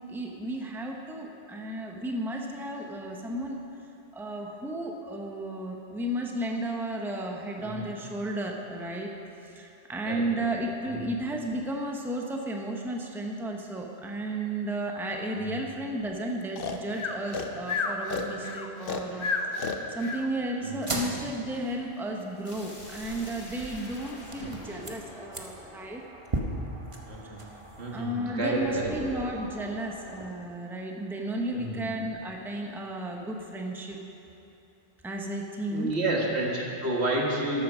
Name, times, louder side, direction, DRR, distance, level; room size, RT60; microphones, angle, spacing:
voice 1, 0.0-3.6 4.1-9.1 9.4-26.0 27.2-27.3 27.9-34.0 35.0-35.9, right 1 dB, ahead, 1 dB, 0.8 m, -33 dB
voice 2, 10.1-10.5 10.9-11.0 15.4-15.5 20.6-21.1 24.4-24.5 27.1-27.4 27.8-28.9 31.5-31.8 35.7-37.6, right 2 dB, 80° right, -2 dB, 2.0 m, -30 dB
Breathing, 16.6-20.3, left 4 dB, 60° left, 1.0 m, -31 dB
sound 1, 20.7-30.3, right 1 dB, 30° right, 1.0 m, -39 dB
sound 2, 22.4-27.2, left 1 dB, 90° left, 2.0 m, -48 dB
12.0 x 8.7 x 6.2 m, 2.9 s
omnidirectional pair, 1.1 m